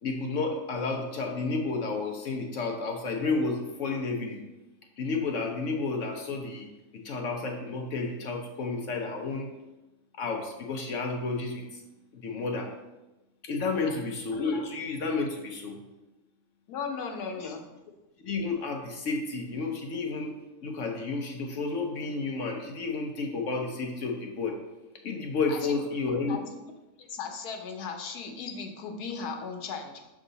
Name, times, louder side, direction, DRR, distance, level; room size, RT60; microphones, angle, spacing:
voice 1, 0.0-4.4 5.0-6.7 7.0-9.5 10.2-11.8 12.1-12.7 13.4-15.8 17.4-17.5 18.2-20.3 20.6-24.6 25.0-26.4, left 3 dB, 60° left, 2 dB, 0.9 m, -31 dB
voice 2, 13.7-14.1 16.7-17.7 25.5-25.8 26.3-26.5 27.0-30.1, left 5 dB, 90° left, 4 dB, 1.3 m, -37 dB
6.6 x 3.6 x 3.9 m, 1.0 s
omnidirectional pair, 1.6 m